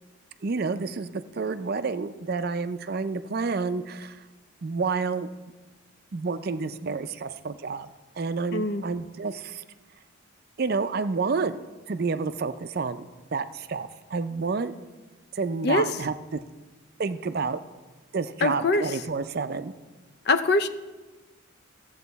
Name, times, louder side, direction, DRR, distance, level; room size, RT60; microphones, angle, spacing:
voice 1, 0.4-4.2 4.6-5.3 6.1-7.9 8.2-9.6 10.6-11.6 11.9-13.1 13.3-14.7 15.3-16.4 17.0-17.6 18.1-19.7, right 4 dB, 50° right, 11 dB, 0.4 m, -29 dB
voice 2, 8.5-8.8 15.6-15.9 18.4-18.9 20.3-20.7, left 2 dB, 50° left, 11 dB, 0.5 m, -23 dB
15.0 x 7.7 x 4.0 m, 1.2 s
head